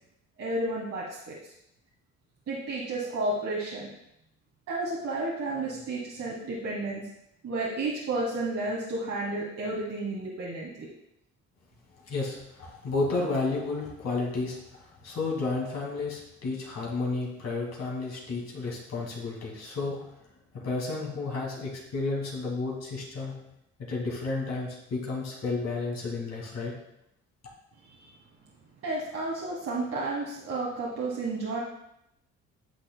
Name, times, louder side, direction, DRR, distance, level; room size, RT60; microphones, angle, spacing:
voice 1, 0.4-1.4 2.5-3.9 4.7-7.1 7.4-10.9 27.9-28.1 28.8-31.6, right 2 dB, 55° right, -4 dB, 1.5 m, -32 dB
voice 2, 12.0-20.0 20.5-23.4 23.8-26.7, left 3 dB, 60° left, -3 dB, 2.2 m, -32 dB
9.8 x 6.1 x 2.2 m, 0.81 s
cardioid pair, 90°, 30 cm